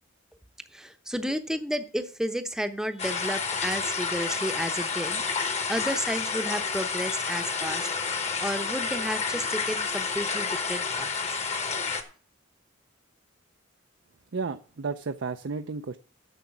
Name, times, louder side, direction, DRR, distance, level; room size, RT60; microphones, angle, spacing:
voice 1, 0.7-7.9 8.4-11.1, equal, 5° right, 8 dB, 0.7 m, -32 dB
sound 1, 3.0-12.0, left 5 dB, 35° left, 1.1 m, -30 dB
voice 2, 14.3-16.0, right 4 dB, 65° right, 8 dB, 0.5 m, -32 dB
10.5 x 7.1 x 5.9 m, 0.41 s
head